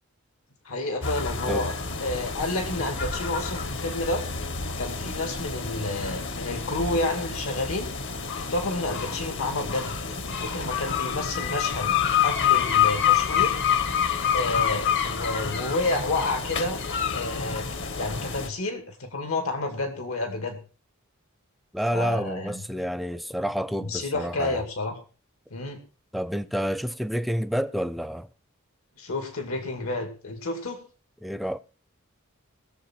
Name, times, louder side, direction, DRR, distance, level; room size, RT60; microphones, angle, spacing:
voice 1, 0.6-1.7 2.0-4.2 4.8-7.9 8.3-9.9 10.3-11.9 12.2-13.6 14.3-16.8 17.1-20.6 21.9-22.6 23.8-25.0 25.5-25.8 29.0-30.8, left 2 dB, 85° left, 2.3 m, -30 dB
sound 1, 1.0-18.5, left 8 dB, 60° left, 1.2 m, -28 dB
voice 2, 21.7-24.6 26.1-28.3 31.2-31.6, equal, ahead, 0.5 m, -29 dB
21.0 x 7.5 x 4.5 m
head